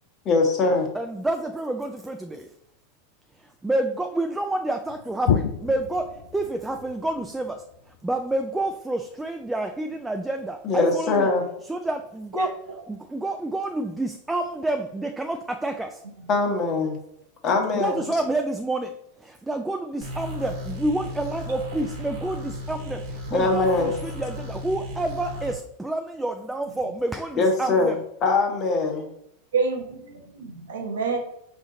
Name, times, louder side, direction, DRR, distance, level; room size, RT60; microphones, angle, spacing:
voice 1, 0.2-0.9 10.6-11.4 16.3-17.0 17.4-18.0 23.3-23.9 27.4-27.9 28.2-29.0, left 3 dB, 35° left, 1.2 m, -22 dB
voice 2, 0.9-2.5 3.6-7.6 8.0-11.3 11.7-12.5 12.9-16.0 17.7-18.9 19.2-28.0, right 2 dB, 10° right, 0.4 m, -28 dB
sound 1, 4.8-10.5 12.6-13.1 13.6-13.7 14.4-14.7, left 8 dB, 70° left, 0.4 m, -32 dB
sound 2, 20.0-25.6, left 1 dB, 50° right, 1.0 m, -35 dB
voice 3, 29.5-31.2, right 5 dB, 75° right, 1.0 m, -28 dB
4.9 x 2.6 x 3.9 m
hypercardioid pair, 95°, 0 cm